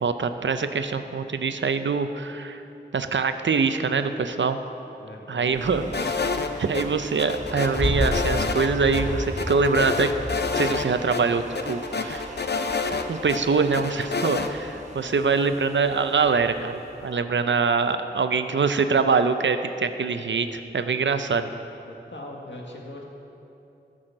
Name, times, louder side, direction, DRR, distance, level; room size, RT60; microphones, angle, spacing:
voice 1, 0.0-2.6 2.9-4.6 5.3-6.2 6.6-10.1 10.5-11.4 11.7-12.3 13.1-21.5, right 4 dB, 85° right, 9 dB, 0.6 m, -24 dB
voice 2, 5.0-5.5 14.9-15.1 21.9-23.0, left 1 dB, 80° left, -1 dB, 1.7 m, -41 dB
sound 1, 5.5-17.6, right 2 dB, 40° right, 1.0 m, -43 dB
sound 2, 5.9-6.8 7.2-8.7 8.9-9.0 9.4-10.9 11.1-11.2 11.5-13.4 13.7-14.5, left 4 dB, 65° left, 0.7 m, -28 dB
sound 3, 7.4-17.1, left 1 dB, 35° left, 1.5 m, -33 dB
13.5 x 6.3 x 6.5 m, 2.8 s
wide cardioid pair, 40°, 19 cm